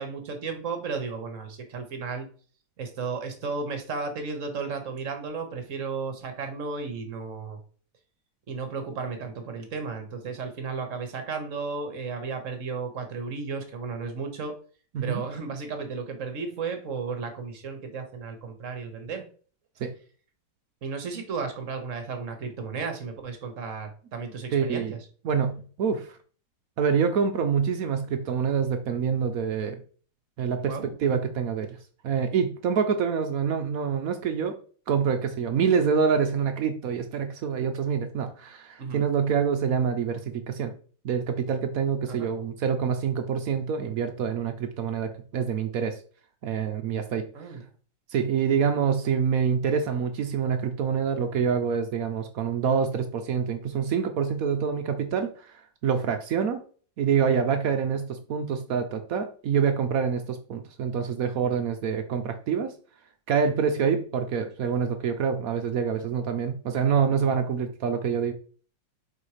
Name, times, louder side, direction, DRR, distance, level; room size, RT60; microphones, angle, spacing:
voice 1, 0.0-2.3 2.8-7.6 8.5-14.5 15.0-19.2 20.8-25.0 30.6-30.9 38.8-39.0 42.1-42.3 47.3-47.7 63.8-63.9 67.3-67.4, right 4 dB, 45° right, 6 dB, 1.2 m, -34 dB
voice 2, 24.5-24.9 25.2-26.2 26.8-29.8 30.4-31.8 32.0-34.5 34.9-40.7 41.0-46.0 46.4-47.2 48.1-55.5 55.8-56.6 57.0-62.7 63.3-68.3, right 6 dB, 70° right, 7 dB, 0.8 m, -26 dB
4.9 x 4.2 x 4.8 m, 0.42 s
omnidirectional pair, 2.2 m